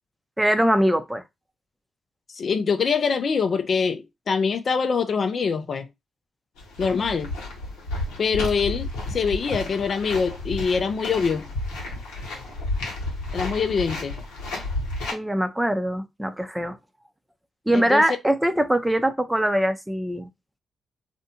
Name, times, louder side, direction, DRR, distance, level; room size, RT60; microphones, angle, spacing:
voice 1, 0.4-1.2 15.1-16.8 17.7-20.3, right 1 dB, 10° right, 0.5 m, -22 dB
voice 2, 2.3-5.9 6.8-7.3 8.2-11.5 13.3-14.2 17.7-18.0, left 5 dB, 55° left, 0.4 m, -24 dB
sound 1, 6.6-15.1, left 2 dB, 85° left, 0.9 m, -32 dB
2.6 x 2.1 x 2.8 m
supercardioid pair, 45°, 0 cm